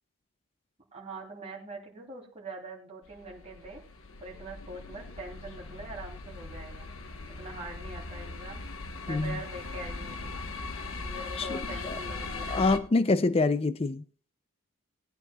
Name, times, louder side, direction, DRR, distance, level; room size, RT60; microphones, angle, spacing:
voice 1, 0.9-3.8 4.2-6.9 7.3-8.6 9.0-10.3 11.0-12.6, right 2 dB, 30° right, 3.1 m, -43 dB
sound 1, 3.1-12.8, left 3 dB, 70° left, 1.1 m, -39 dB
voice 2, 9.1-9.4 11.4-12.0 12.5-14.0, left 3 dB, 25° left, 0.4 m, -26 dB
19.5 x 9.0 x 2.3 m
head